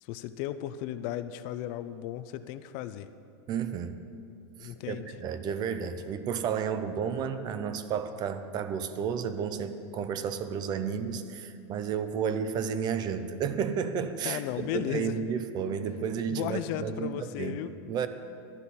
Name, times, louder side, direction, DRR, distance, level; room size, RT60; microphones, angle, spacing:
voice 1, 0.0-3.1 4.6-5.1 14.2-15.2 16.3-17.7, left 12 dB, 45° left, 12 dB, 0.4 m, -35 dB
voice 2, 3.5-4.0 4.6-17.6 17.9-18.1, right 7 dB, 30° right, 10 dB, 0.5 m, -32 dB
12.0 x 9.8 x 4.1 m, 2.4 s
supercardioid pair, 145°, 14 cm